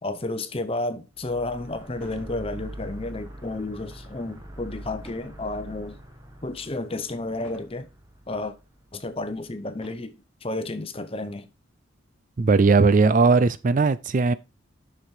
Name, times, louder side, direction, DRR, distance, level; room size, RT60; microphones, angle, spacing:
voice 1, 0.0-6.0 6.4-7.9 8.3-8.5 8.9-11.5, left 2 dB, 25° left, 0.8 m, -32 dB
sound 1, 1.2-9.5, equal, 15° right, 1.4 m, -43 dB
sound 2, 2.0-2.4 2.8-3.1 5.0-5.4 6.0-6.4 7.4-7.8 8.5-8.6 9.7-10.2 11.2-11.4 11.7-11.8 12.2-13.4, equal, 5° left, 2.7 m, -51 dB
voice 2, 12.4-14.3, right 4 dB, 40° right, 0.4 m, -18 dB
7.1 x 6.1 x 4.8 m
head